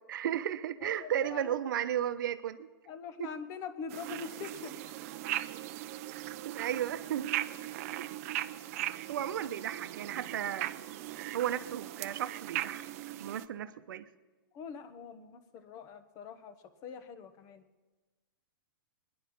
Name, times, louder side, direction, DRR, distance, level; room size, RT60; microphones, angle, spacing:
voice 1, 0.1-2.7 3.2-3.3 6.4-7.3 8.0-8.1 9.1-10.7 11.3-12.9 13.2-14.1, right 10 dB, 60° right, 11 dB, 0.9 m, -34 dB
voice 2, 0.8-1.6 2.9-4.9 14.5-16.5 16.8-17.6, left 6 dB, 30° left, 11 dB, 1.1 m, -44 dB
sound 1, 3.9-13.5, right 14 dB, 40° right, 0.6 m, -39 dB
21.5 x 10.5 x 5.5 m, 1.3 s
hypercardioid pair, 150°, 12 cm